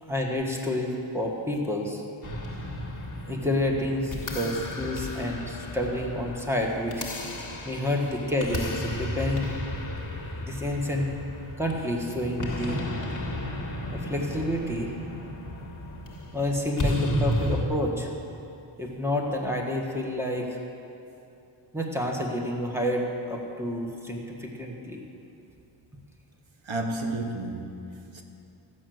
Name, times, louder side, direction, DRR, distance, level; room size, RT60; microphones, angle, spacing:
voice 1, 0.0-2.0 3.3-7.0 7.6-9.5 10.4-11.1 11.6-12.8 13.9-14.9 16.3-18.1 18.8-20.6 21.7-25.0, left 1 dB, 5° right, 0 dB, 1.4 m, -29 dB
sound 1, 2.2-17.6, left 1 dB, 40° left, 1.6 m, -33 dB
voice 2, 26.6-28.2, right 2 dB, 70° right, 3 dB, 1.1 m, -32 dB
15.0 x 6.2 x 7.8 m, 2.7 s
wide cardioid pair, 115°, 49 cm